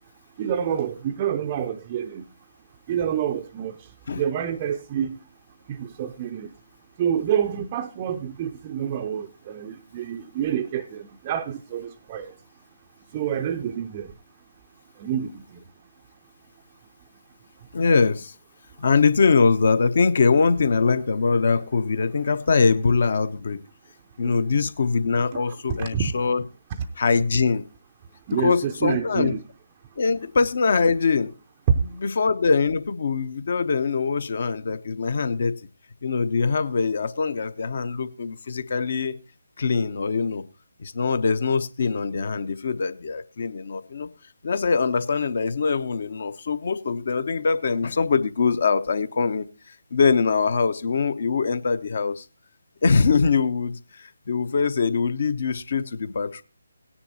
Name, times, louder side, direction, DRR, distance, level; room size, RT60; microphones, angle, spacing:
voice 1, 0.4-2.2 2.9-3.7 4.2-5.2 5.7-6.5 7.0-12.3 13.1-14.1 15.0-15.4 24.2-24.6 25.3-25.4 25.8-26.1 28.3-29.4, right 9 dB, 25° right, 0.5 m, -28 dB
voice 2, 17.7-18.3 18.8-23.6 24.2-26.4 27.0-27.6 28.3-29.3 30.0-31.3 31.9-35.6 36.0-39.1 39.6-40.4 40.8-44.1 44.4-52.2 52.8-56.4, left 5 dB, 45° left, 0.8 m, -23 dB
18.0 x 9.9 x 2.8 m
figure-of-eight pair, 150°, 0 cm